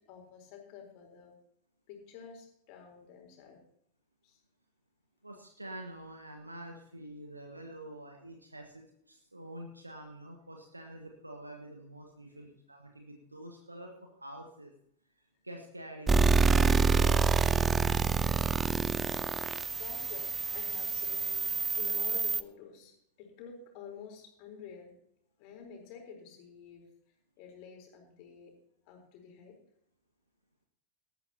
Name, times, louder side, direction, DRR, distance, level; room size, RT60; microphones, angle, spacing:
voice 1, 0.1-1.3 1.9-3.6 4.2-4.4 12.3-12.5 19.7-21.5 21.7-22.9 23.2-24.9 25.4-26.9 27.4-28.5 28.9-29.6, left 6 dB, 45° left, 1 dB, 4.1 m, -49 dB
voice 2, 5.2-14.7 15.4-17.4, right 1 dB, 85° right, 2 dB, 1.6 m, -47 dB
sound 1, 16.1-22.4, right 5 dB, 15° right, 0.7 m, -27 dB
18.5 x 13.0 x 2.9 m, 0.71 s
figure-of-eight pair, 90°, 0 cm